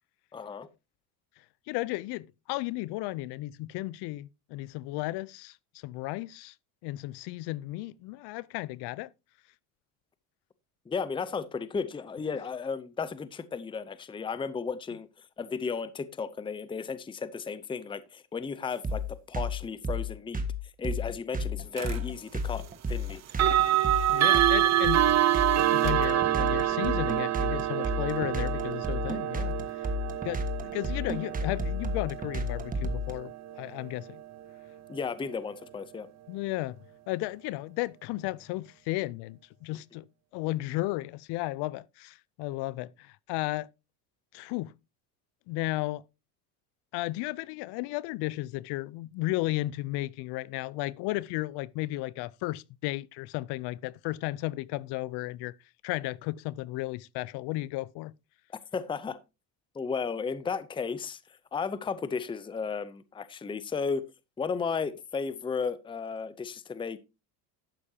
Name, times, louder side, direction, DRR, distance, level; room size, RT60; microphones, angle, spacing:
voice 1, 0.3-0.7 10.9-20.4 20.8-23.2 34.9-36.1 58.7-59.2 59.7-61.2 61.5-64.0 64.4-67.0, left 5 dB, 10° left, 0.6 m, -34 dB
voice 2, 1.7-5.6 5.8-6.5 6.8-9.1 24.1-25.0 25.7-29.8 30.2-34.2 36.3-36.8 37.1-40.1 40.3-43.7 44.3-44.7 45.5-46.0 46.9-55.5 55.8-58.1, left 18 dB, 65° left, 0.6 m, -34 dB
sound 1, 18.8-33.1, left 2 dB, 20° right, 1.5 m, -32 dB
sound 2, 21.8-22.0 23.3-34.2, right 12 dB, 35° right, 0.8 m, -27 dB
11.5 x 8.6 x 2.8 m
supercardioid pair, 110°, 45 cm